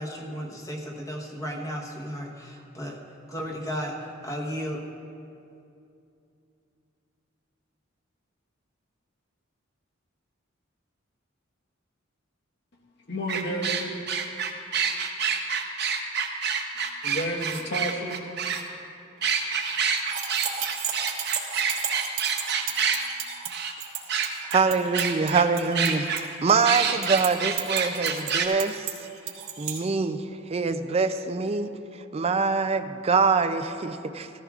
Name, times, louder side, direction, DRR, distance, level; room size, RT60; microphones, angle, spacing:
voice 1, 0.0-3.0 3.3-4.9, equal, 15° left, 0 dB, 1.1 m, -34 dB
voice 2, 13.1-14.0 17.0-18.2, equal, 55° left, -1 dB, 1.3 m, -31 dB
sound 1, 13.3-18.6 19.2-23.0 23.5-23.7 24.1-24.6 24.9-25.4 25.7-26.2 26.6-28.5, right 6 dB, 55° right, 0.9 m, -27 dB
sound 2, 20.0-29.8, right 8 dB, 85° right, 1.4 m, -34 dB
voice 3, 24.5-26.1 26.4-28.9 29.6-30.2 30.5-31.7 32.1-34.4, right 4 dB, 30° right, 10 dB, 0.4 m, -24 dB
15.0 x 14.0 x 2.4 m, 2.7 s
head